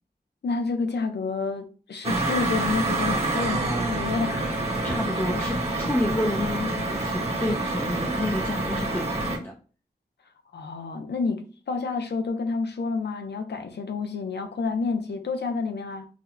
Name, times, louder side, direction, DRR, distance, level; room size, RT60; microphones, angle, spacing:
voice 1, 0.4-4.5 10.5-16.1, left 4 dB, 80° left, 0.5 m, -29 dB
sound 1, 2.0-9.4, right 2 dB, 35° right, 1.0 m, -27 dB
voice 2, 4.8-9.5, left 1 dB, 10° left, 0.5 m, -29 dB
2.9 x 2.0 x 3.8 m
wide cardioid pair, 80°, 17 cm